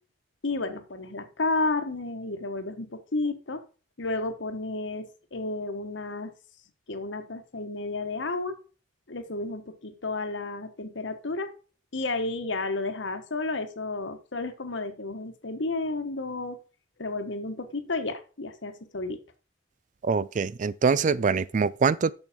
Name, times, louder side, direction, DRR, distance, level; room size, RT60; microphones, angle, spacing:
voice 1, 0.4-3.6 4.0-6.3 6.9-8.6 9.1-11.5 11.9-16.6 17.0-19.2, left 2 dB, 70° left, 1.2 m, -32 dB
voice 2, 20.0-22.1, right 5 dB, 40° right, 0.3 m, -24 dB
7.3 x 6.3 x 5.0 m
head